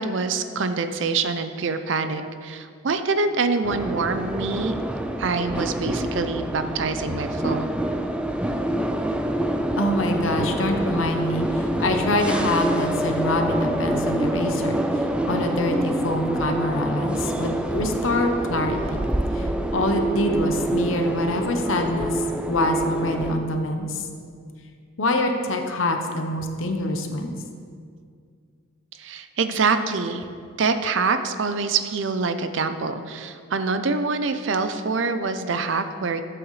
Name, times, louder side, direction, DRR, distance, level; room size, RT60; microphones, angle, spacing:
voice 1, 0.0-4.7 5.2-7.7 29.0-30.2 30.6-36.2, right 4 dB, 65° right, 9 dB, 0.5 m, -25 dB
sound 1, 3.6-23.3, right 1 dB, 5° right, 0.4 m, -26 dB
voice 2, 9.8-14.8 15.3-19.0 19.3-24.0 25.0-27.4, left 1 dB, 75° left, 4 dB, 0.9 m, -25 dB
12.0 x 7.8 x 3.2 m, 2.2 s
head